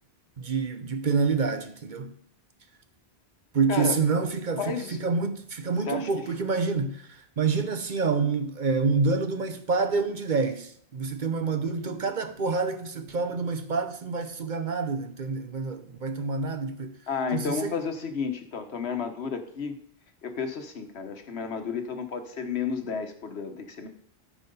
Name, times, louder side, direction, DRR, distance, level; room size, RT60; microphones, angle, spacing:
voice 1, 0.4-2.2 3.5-17.0 17.3-17.7, right 4 dB, 50° right, 0.8 m, -27 dB
voice 2, 4.6-5.0 5.9-6.1 17.1-19.8 20.2-23.9, left 5 dB, 75° left, 1.4 m, -32 dB
13.0 x 4.8 x 5.3 m
omnidirectional pair, 1.1 m